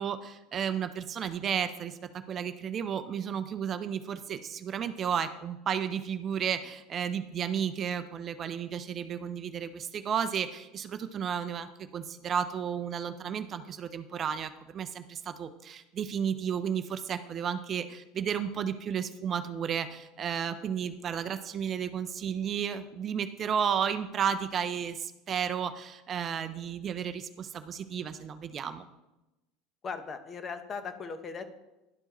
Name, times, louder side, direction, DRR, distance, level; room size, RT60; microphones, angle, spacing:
voice 1, 0.0-28.8, right 8 dB, 40° right, 10 dB, 0.5 m, -33 dB
voice 2, 29.8-31.5, left 5 dB, 35° left, 9 dB, 0.8 m, -38 dB
11.5 x 4.6 x 3.0 m, 0.98 s
supercardioid pair, 100°, 0 cm